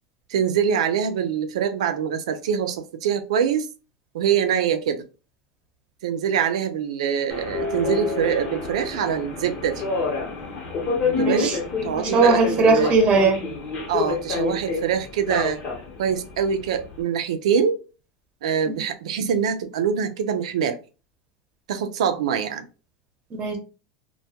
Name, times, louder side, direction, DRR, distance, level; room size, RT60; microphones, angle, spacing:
voice 1, 0.3-3.7 4.1-5.0 6.0-9.8 11.0-11.5 11.8-13.0 13.9-15.6 16.0-17.8 18.4-20.8 21.7-22.7, right 7 dB, 90° right, 0.4 m, -24 dB
Subway metro underground, 7.3-17.0, left 4 dB, 45° left, 0.9 m, -28 dB
voice 2, 11.2-11.5 12.0-13.4 18.7-18.8 23.3-23.6, right 3 dB, 35° right, 0.8 m, -19 dB
2.2 x 2.2 x 2.7 m
supercardioid pair, 125°, 3 cm